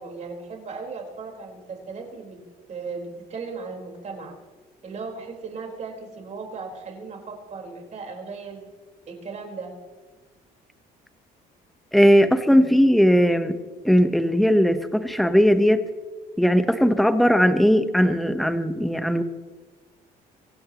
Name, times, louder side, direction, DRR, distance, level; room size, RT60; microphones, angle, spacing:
voice 1, 0.0-2.4 2.7-4.4 4.8-8.7 9.1-9.8, right 4 dB, 45° right, 1 dB, 4.5 m, -37 dB
voice 2, 11.9-13.6 13.8-15.8 16.4-19.2, equal, ahead, 9 dB, 1.1 m, -18 dB
25.5 x 16.0 x 3.1 m, 1.4 s
cardioid pair, 110°, 17 cm